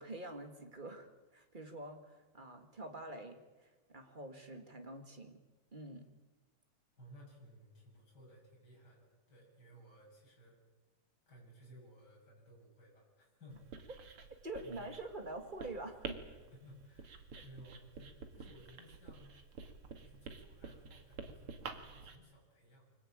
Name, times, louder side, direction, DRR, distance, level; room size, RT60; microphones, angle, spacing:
voice 1, 0.0-5.4 5.7-6.0 14.4-16.2 17.3-17.4, right 2 dB, 20° right, 5 dB, 1.5 m, -46 dB
voice 2, 7.0-10.6 11.3-14.0 14.6-14.8 16.3-19.4 20.0-23.0, equal, 30° left, -2 dB, 7.6 m, -58 dB
Writing, 13.5-22.2, right 5 dB, 50° right, 2.6 m, -50 dB
25.0 x 18.5 x 8.8 m, 1.2 s
omnidirectional pair, 3.5 m